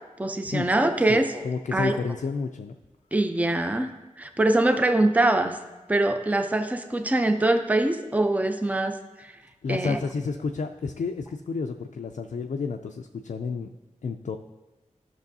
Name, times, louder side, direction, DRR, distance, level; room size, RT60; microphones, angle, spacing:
voice 1, 0.2-1.4 1.7-2.0 3.1-3.9 4.2-5.6 5.9-9.3 9.7-10.0, right 2 dB, 10° right, 7 dB, 0.5 m, -23 dB
voice 2, 1.1-2.7 9.6-13.7 14.0-14.4, left 4 dB, 70° left, 4 dB, 0.4 m, -30 dB
13.0 x 6.1 x 2.7 m, 1.1 s
wide cardioid pair, 85°, 13 cm